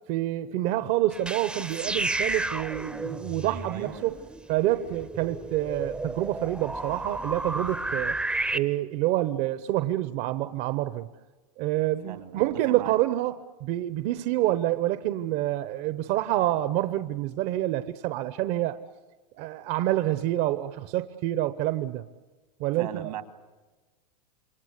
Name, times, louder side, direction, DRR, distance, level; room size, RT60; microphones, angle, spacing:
voice 1, 0.1-4.2 4.5-8.2 8.5-11.1 11.6-18.8 19.4-22.1 22.6-23.1, right 15 dB, 50° right, 1.0 m, -27 dB
sound 1, 1.1-8.6, right 2 dB, 5° right, 0.8 m, -32 dB
voice 2, 3.4-4.1 12.0-13.0 22.8-23.2, right 11 dB, 85° right, 2.5 m, -38 dB
28.0 x 24.0 x 8.2 m
supercardioid pair, 125°, 21 cm